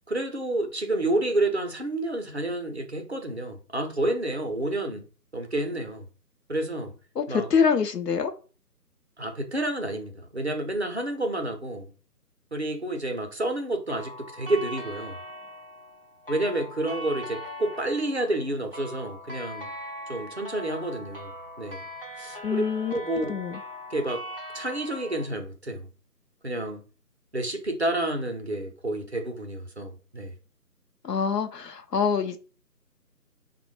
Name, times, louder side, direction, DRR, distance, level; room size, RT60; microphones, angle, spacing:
voice 1, 0.1-5.1 5.3-6.1 6.5-6.9 7.3-7.5 9.2-11.9 12.5-15.2 16.3-19.7 20.1-21.3 21.6-21.9 22.2-22.6 22.9-23.3 23.9-24.2 24.5-25.9 26.4-26.8 27.3-30.4, right 1 dB, 45° right, 0.5 m, -29 dB
voice 2, 7.2-8.3 22.4-23.6 31.0-32.4, left 6 dB, 75° left, 0.6 m, -25 dB
sound 1, 13.9-25.3, left 1 dB, 35° left, 0.5 m, -40 dB
3.4 x 2.1 x 3.1 m
figure-of-eight pair, 155°, 49 cm